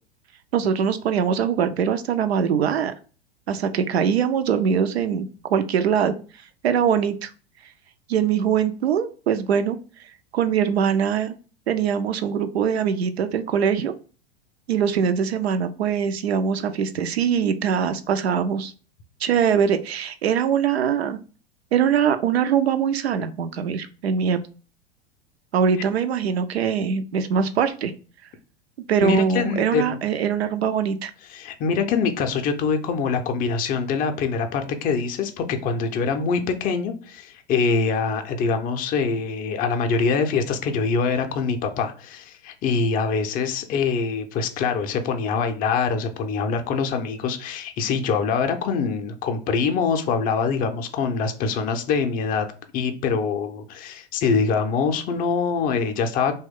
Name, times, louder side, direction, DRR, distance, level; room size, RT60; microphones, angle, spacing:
voice 1, 0.5-2.9 3.5-6.1 6.6-7.3 8.1-9.8 10.3-11.3 11.7-13.9 14.7-18.7 19.2-21.2 21.7-24.4 25.5-27.9 28.9-31.1, right 7 dB, 85° right, 0.5 m, -22 dB
voice 2, 29.0-30.0 31.3-52.5 52.7-56.4, left 5 dB, 30° left, 0.4 m, -24 dB
3.0 x 2.2 x 3.4 m
hypercardioid pair, 95°, 31 cm